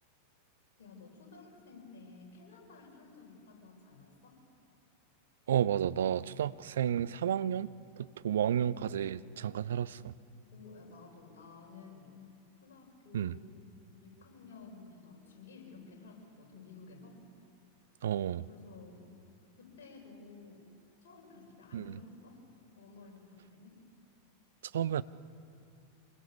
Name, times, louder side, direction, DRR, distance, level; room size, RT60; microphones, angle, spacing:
voice 1, 0.8-4.4 10.5-12.1 12.6-13.5 14.0-17.2 18.5-19.1 19.6-20.6 21.0-22.4 22.7-23.8, left 4 dB, 55° left, -2 dB, 7.0 m, -53 dB
voice 2, 5.5-7.7 8.0-10.1 13.1-13.3 18.0-18.4 21.7-21.8 24.7-25.0, right 9 dB, 60° right, 17 dB, 0.5 m, -31 dB
25.0 x 21.0 x 7.0 m, 2.5 s
figure-of-eight pair, 90°, 0 cm